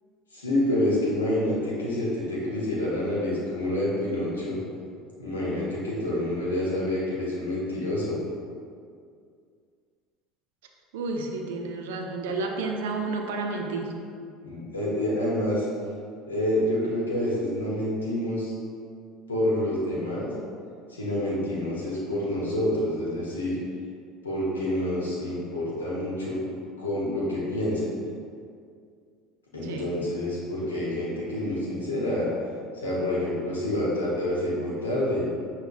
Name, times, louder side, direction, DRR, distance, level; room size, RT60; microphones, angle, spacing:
voice 1, 0.3-4.6 5.2-8.2 14.4-15.7 16.3-18.5 19.3-20.3 20.9-23.5 24.2-26.4 26.8-27.9 29.5-32.3 32.8-35.3, left 1 dB, 90° left, -6 dB, 0.8 m, -27 dB
voice 2, 10.9-14.0 29.6-29.9, right 3 dB, 75° right, 2 dB, 0.4 m, -31 dB
5.6 x 2.1 x 2.5 m, 2.2 s
hypercardioid pair, 70°, 0 cm